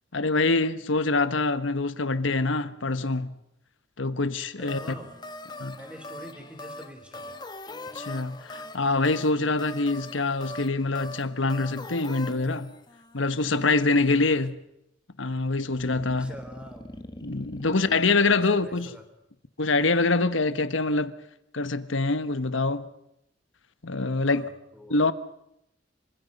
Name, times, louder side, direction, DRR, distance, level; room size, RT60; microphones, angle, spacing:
voice 1, 0.1-3.3 4.0-4.8 5.6-5.8 7.9-12.7 13.1-14.6 15.2-16.3 17.2-19.0 19.6-21.1 21.5-22.9 23.8-24.5 24.9-25.1, left 3 dB, 80° left, 1.4 m, -25 dB
sound 1, 4.6-14.5 15.7-18.0, left 1 dB, 20° left, 1.4 m, -42 dB
voice 2, 4.6-5.1 5.8-7.3 14.3-14.4 16.2-17.0 17.6-19.0 24.2-25.1, equal, 5° right, 4.0 m, -46 dB
27.0 x 25.0 x 5.4 m
head